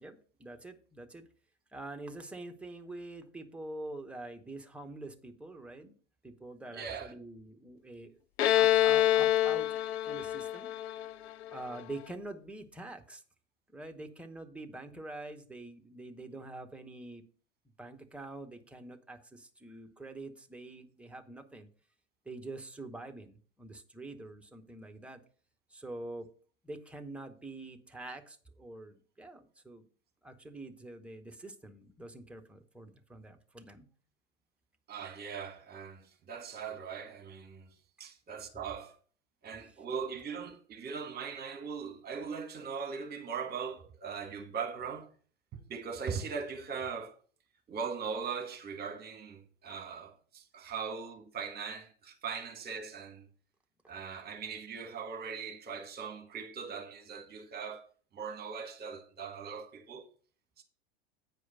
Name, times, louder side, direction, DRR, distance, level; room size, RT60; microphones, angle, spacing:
voice 1, 0.0-1.3 1.7-5.9 6.2-8.2 8.5-9.8 10.0-10.7 11.5-13.2 13.7-17.2 17.8-21.7 22.2-25.2 25.7-26.3 26.6-29.8 30.2-33.9, right 2 dB, 5° right, 0.9 m, -45 dB
voice 2, 6.7-7.1 34.9-37.7 38.0-39.0 39.4-45.1 45.5-47.2 47.7-53.3 53.9-60.0 60.6-60.7, right 6 dB, 25° right, 1.6 m, -40 dB
Bowed string instrument, 8.4-11.9, left 13 dB, 65° left, 0.5 m, -27 dB
9.0 x 4.8 x 5.5 m
figure-of-eight pair, 85°, 35 cm